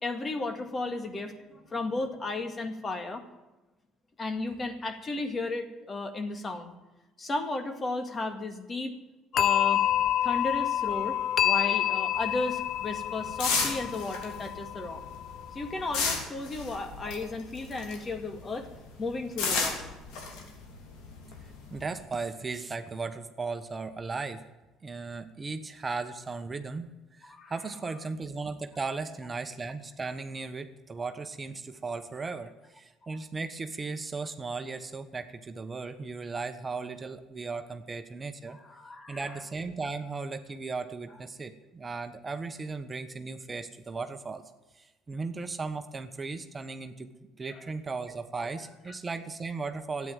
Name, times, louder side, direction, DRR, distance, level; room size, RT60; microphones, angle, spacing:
voice 1, 0.0-3.2 4.2-6.7 7.2-9.0 9.3-9.8 10.2-11.2 11.4-15.0 15.5-18.7 19.0-19.9 27.2-27.5 38.5-39.4 47.5-47.6, left 2 dB, 35° left, 7 dB, 2.2 m, -34 dB
sound 1, 9.3-15.9, left 11 dB, 55° left, 0.7 m, -28 dB
sound 2, 12.1-18.2 18.5-21.9, left 5 dB, 70° left, 3.4 m, -33 dB
voice 2, 21.7-24.5 24.8-38.6 39.1-44.4 44.8-47.1 47.4-50.1, right 4 dB, 30° right, 8 dB, 1.2 m, -36 dB
13.0 x 9.6 x 9.1 m, 1.1 s
hypercardioid pair, 65°, 0 cm